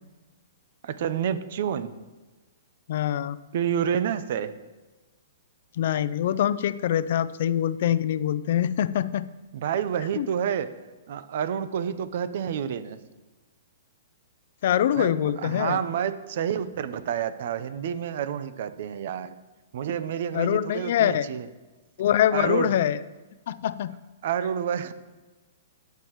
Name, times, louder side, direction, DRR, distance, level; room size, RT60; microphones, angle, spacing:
voice 1, 0.8-1.9 3.5-4.5 9.5-10.7 11.1-13.0 15.0-19.3 19.7-21.5 22.3-22.7 24.2-24.9, right 8 dB, 60° right, 13 dB, 0.8 m, -29 dB
voice 2, 2.9-3.4 5.8-9.3 10.2-10.3 14.6-15.8 20.3-21.3 22.0-23.0 23.5-24.0, left 10 dB, 60° left, 15 dB, 0.5 m, -24 dB
17.5 x 6.9 x 3.1 m, 1.2 s
hypercardioid pair, 135°, 0 cm